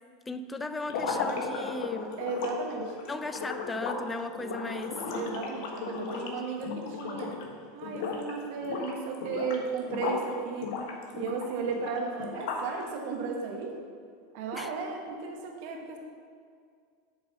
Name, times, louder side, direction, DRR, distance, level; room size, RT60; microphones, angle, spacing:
voice 1, 0.3-2.2 3.1-5.0 6.0-6.6 14.5-14.7, left 2 dB, 15° left, 11 dB, 0.5 m, -37 dB
sound 1, 0.8-7.5 7.8-8.3 8.6-10.3 10.6-12.8, left 4 dB, 60° left, 1.3 m, -35 dB
voice 2, 2.2-2.9 5.1-7.3 7.7-10.7 11.1-13.7 14.3-16.0, right 4 dB, 60° right, 2 dB, 1.2 m, -34 dB
8.4 x 4.7 x 6.6 m, 2.1 s
hypercardioid pair, 90°, 0 cm